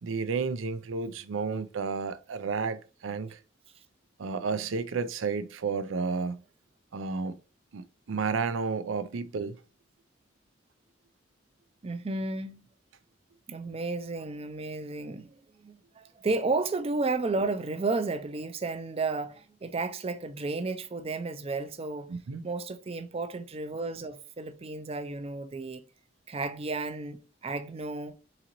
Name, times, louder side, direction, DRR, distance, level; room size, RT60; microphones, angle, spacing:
voice 1, 0.0-3.4 4.2-6.4 6.9-7.4 7.7-9.6 22.1-22.4, right 5 dB, 90° right, 0.5 m, -32 dB
voice 2, 11.8-12.7 13.5-22.1 22.4-25.8 26.3-28.2, right 3 dB, 30° right, 0.4 m, -33 dB
3.9 x 3.9 x 2.9 m
head